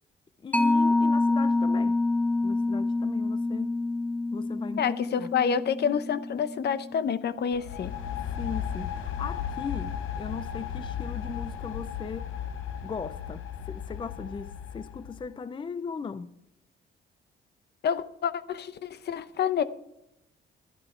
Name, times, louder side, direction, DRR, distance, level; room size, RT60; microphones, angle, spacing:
voice 1, 0.4-2.0 2.4-3.7 4.3-5.3 8.4-12.3 12.8-16.3, left 5 dB, 25° left, 0.5 m, -38 dB
Mallet percussion, 0.5-7.6, left 2 dB, 10° left, 1.0 m, -27 dB
voice 2, 4.8-7.9 17.8-19.6, left 7 dB, 55° left, 0.8 m, -28 dB
sound 1, 7.5-15.3, left 8 dB, 85° left, 0.9 m, -35 dB
12.0 x 11.5 x 4.5 m
cardioid pair, 90°, 20 cm